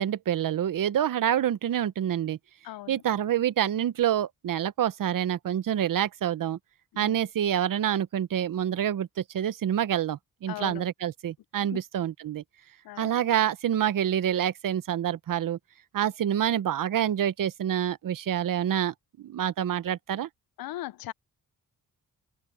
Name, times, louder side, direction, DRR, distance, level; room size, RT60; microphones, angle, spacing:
voice 1, 0.0-2.4 2.9-6.6 7.0-12.4 13.0-15.6 15.9-20.3, right 10 dB, 70° right, 0.8 m, -27 dB
voice 2, 2.6-3.0 6.9-7.2 10.5-10.8 11.6-11.8 12.8-13.1 20.6-21.1, left 15 dB, 90° left, 0.5 m, -38 dB
cardioid pair, 90°, 34 cm